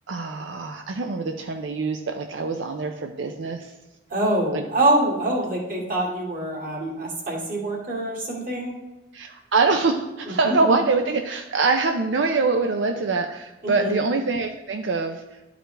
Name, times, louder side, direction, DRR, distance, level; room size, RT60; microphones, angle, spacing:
voice 1, 0.1-3.7 4.5-4.6 9.1-15.2, right 3 dB, 85° right, 5 dB, 0.5 m, -24 dB
voice 2, 4.1-8.8 10.4-10.7 13.6-13.9, right 1 dB, 45° right, -2 dB, 2.3 m, -25 dB
11.5 x 5.0 x 3.3 m, 1.1 s
head